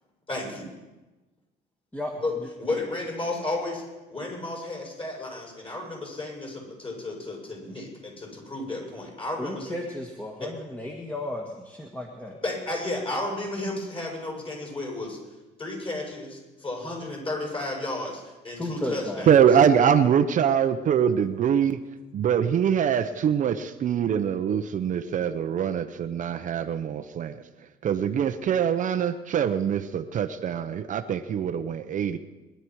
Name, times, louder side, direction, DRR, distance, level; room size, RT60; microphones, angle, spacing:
voice 1, 0.3-0.7 2.2-2.3 2.6-3.8 4.1-9.7 12.4-15.2 15.6-19.3, left 2 dB, 30° left, -2 dB, 7.3 m, -33 dB
voice 2, 9.4-12.3 18.6-19.3 25.0-25.1, left 1 dB, 10° left, 0 dB, 1.7 m, -34 dB
voice 3, 19.3-21.8 22.1-27.4 27.8-32.2, right 8 dB, 50° right, 9 dB, 0.8 m, -23 dB
22.5 x 11.5 x 4.7 m, 1.1 s
cardioid pair, 110°, 17 cm